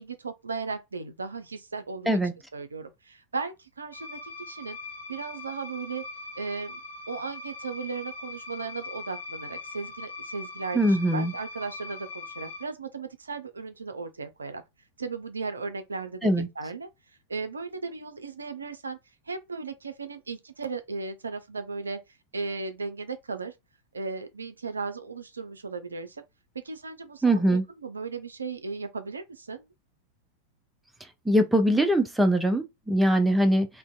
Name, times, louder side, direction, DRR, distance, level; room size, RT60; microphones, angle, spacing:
voice 1, 0.0-2.2 2.5-4.8 5.1-6.0 6.4-14.6 15.0-16.9 17.3-19.0 19.3-22.0 22.3-23.5 23.9-26.2 26.5-29.7, right 4 dB, 75° right, 0.3 m, -36 dB
sound 1, 3.9-12.6, left 3 dB, 70° left, 0.5 m, -41 dB
voice 2, 10.7-11.3 16.2-16.5 27.2-27.6 31.3-33.7, right 1 dB, 5° right, 0.4 m, -22 dB
2.5 x 2.1 x 2.3 m
figure-of-eight pair, 90°, 0 cm